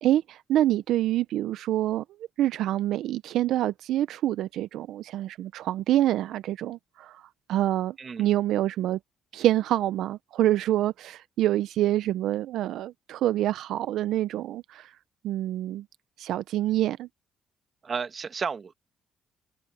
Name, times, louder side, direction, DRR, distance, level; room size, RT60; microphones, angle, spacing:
voice 1, 0.0-2.0 2.4-9.0 9.3-15.0 15.2-15.9 16.2-17.1, right 13 dB, 85° right, 0.4 m, -26 dB
voice 2, 17.8-18.7, right 5 dB, 45° right, 1.6 m, -32 dB
cardioid pair, 90°, 0 cm